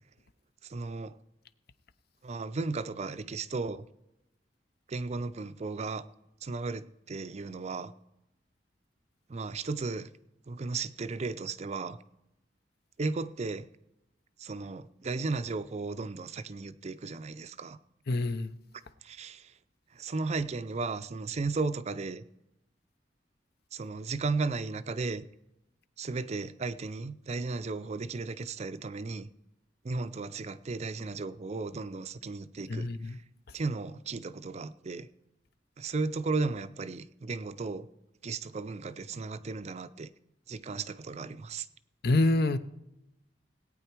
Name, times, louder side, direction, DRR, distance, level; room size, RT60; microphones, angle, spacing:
voice 1, 0.6-1.1 2.2-3.8 4.9-6.0 6.4-7.9 9.3-10.1 10.5-12.0 13.0-13.7 14.4-17.8 19.0-19.5 19.9-22.2 23.7-25.2 26.0-29.3 29.8-33.2 33.5-35.1 35.8-37.9 38.2-40.1 40.5-41.7, right 3 dB, 40° right, 0.5 m, -35 dB
voice 2, 18.1-18.5 32.7-33.0 42.0-42.6, left 2 dB, 60° left, 0.6 m, -25 dB
18.5 x 9.0 x 4.6 m
head